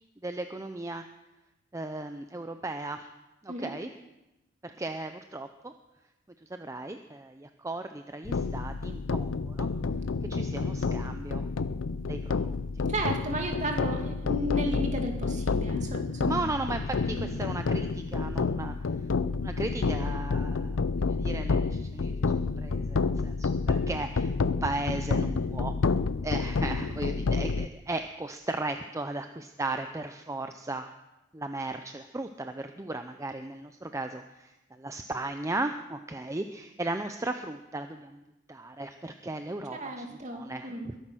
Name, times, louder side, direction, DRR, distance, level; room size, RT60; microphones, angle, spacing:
voice 1, 0.2-1.1 1.7-3.1 3.4-3.9 4.6-5.7 6.4-9.7 10.3-11.5 12.1-12.6 16.3-18.7 19.3-25.7 26.2-30.9 31.3-38.2 38.5-41.0, right 2 dB, 15° right, 7 dB, 0.6 m, -36 dB
sound 1, 8.2-27.7, left 4 dB, 90° left, 0.6 m, -29 dB
voice 2, 12.9-16.4 17.1-17.3 39.7-40.9, right 1 dB, 40° right, 3 dB, 2.4 m, -34 dB
21.5 x 9.9 x 6.2 m, 0.97 s
head